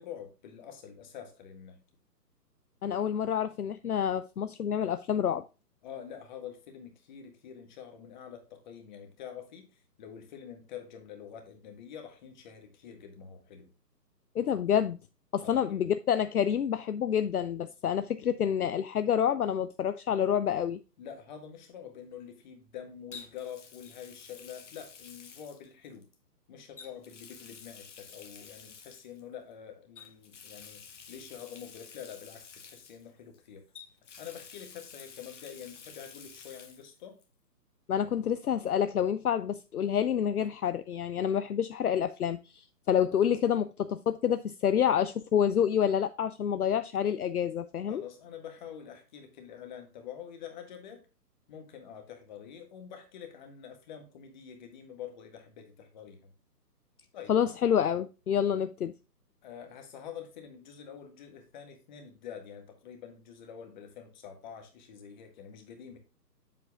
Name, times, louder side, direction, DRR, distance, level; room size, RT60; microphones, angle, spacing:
voice 1, 0.0-1.8 5.8-9.7 10.0-13.7 15.4-15.8 21.0-26.1 26.5-33.6 34.2-37.2 47.9-51.1 51.5-56.3 57.1-57.3 59.4-66.0, left 8 dB, 30° left, 1.6 m, -46 dB
voice 2, 2.8-5.4 14.3-15.0 15.3-20.8 37.9-48.0 57.3-58.9, left 9 dB, 65° left, 0.6 m, -28 dB
Water tap faucet, 20.1-20.4 23.1-26.2 26.7-29.2 30.0-33.4 33.7-36.9 37.2-37.3 38.9-39.0, left 6 dB, 45° left, 1.5 m, -50 dB
7.7 x 7.7 x 2.3 m
figure-of-eight pair, 140°, 48 cm